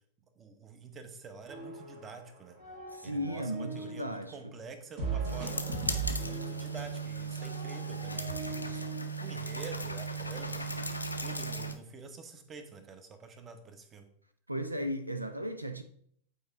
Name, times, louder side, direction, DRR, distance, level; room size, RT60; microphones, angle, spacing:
voice 1, 0.4-2.6 3.0-5.7 6.2-8.9 9.2-10.9 11.2-14.1, right 4 dB, 25° right, 0.9 m, -47 dB
sound 1, 1.5-2.2 2.5-4.1 5.0-9.0, right 4 dB, 50° right, 1.8 m, -39 dB
voice 2, 2.9-4.3 14.5-15.8, equal, 85° right, 0.4 m, -35 dB
sound 2, 5.2-11.7, right 3 dB, 85° left, 0.6 m, -36 dB
8.5 x 4.3 x 3.6 m
figure-of-eight pair, 90°, 0 cm